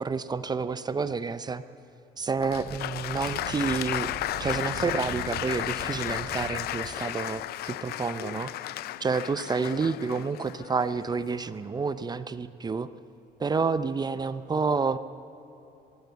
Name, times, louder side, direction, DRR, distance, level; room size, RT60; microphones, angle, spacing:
voice 1, 0.0-1.6 2.2-4.1 4.4-8.5 9.0-12.9 13.4-15.0, right 4 dB, 25° right, 14 dB, 0.6 m, -29 dB
Wind, 2.2-7.0, right 5 dB, 70° right, 3.1 m, -42 dB
Applause, 2.4-11.4, left 14 dB, 70° left, 0.5 m, -34 dB
21.5 x 16.0 x 8.2 m, 2.9 s
cardioid pair, 110°, 17 cm